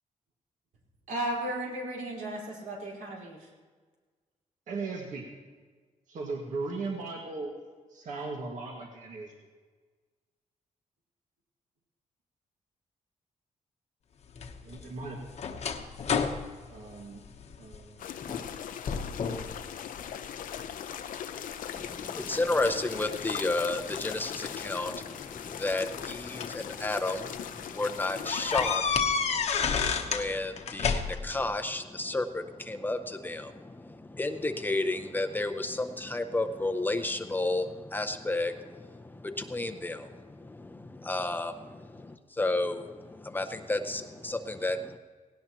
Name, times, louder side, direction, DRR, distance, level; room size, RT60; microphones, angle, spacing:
voice 1, 1.1-3.5, right 1 dB, 85° right, -3 dB, 4.4 m, -35 dB
voice 2, 4.7-5.3 6.1-7.5 7.9-9.3 14.6-15.2 16.7-17.2 17.6-18.8, right 3 dB, 65° right, -1 dB, 1.9 m, -38 dB
sound 1, 14.4-17.8 18.2-18.6 18.9-19.5 20.0-20.7 21.3-22.7 23.9-24.0 25.2-26.6 27.2-27.3 27.6-27.7 28.3-30.3 30.6-31.4, left 6 dB, 55° left, 1.0 m, -31 dB
sound 2, 18.0-28.8, left 9 dB, 90° left, 0.7 m, -39 dB
voice 3, 21.7-45.0, left 2 dB, 15° left, 7 dB, 0.6 m, -32 dB
18.0 x 17.5 x 3.0 m, 1.4 s
wide cardioid pair, 160°, 14 cm